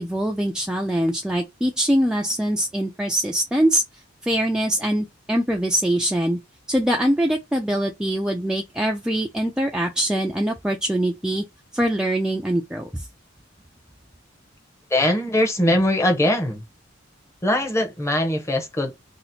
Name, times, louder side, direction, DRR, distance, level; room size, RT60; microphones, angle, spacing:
voice 1, 0.0-3.8 4.2-6.4 6.7-11.4 11.7-13.1, right 1 dB, 5° right, 0.3 m, -23 dB
voice 2, 14.9-16.6 17.4-19.0, left 1 dB, 15° left, 0.7 m, -21 dB
2.8 x 2.0 x 4.0 m
head